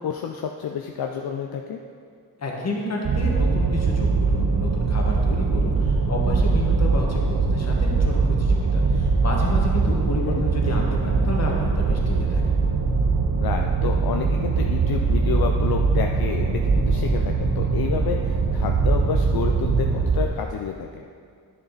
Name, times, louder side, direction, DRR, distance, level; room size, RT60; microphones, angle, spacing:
voice 1, 0.0-1.8 10.3-10.4 13.4-21.1, left 7 dB, 70° left, 3 dB, 0.6 m, -30 dB
voice 2, 2.4-12.4, left 2 dB, 45° left, -1 dB, 1.7 m, -30 dB
sound 1, 3.0-20.2, right 4 dB, 60° right, 0.9 m, -21 dB
10.5 x 6.9 x 4.1 m, 2.2 s
cardioid pair, 105°, 37 cm